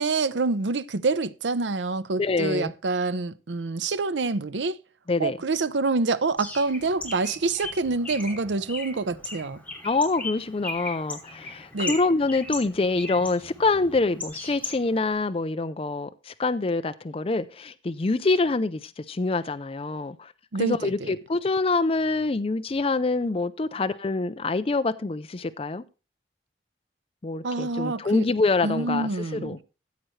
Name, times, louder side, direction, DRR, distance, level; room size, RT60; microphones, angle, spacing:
voice 1, 0.0-4.8 5.2-9.6 11.7-12.0 20.5-21.1 27.4-28.3 28.6-29.6, right 3 dB, 80° right, 0.7 m, -27 dB
voice 2, 2.2-2.7 5.1-5.4 9.8-20.3 20.6-25.8 27.2-29.6, left 3 dB, 30° left, 0.5 m, -26 dB
Bird, 6.4-15.1, left 2 dB, 10° left, 2.7 m, -38 dB
14.5 x 7.6 x 3.2 m
head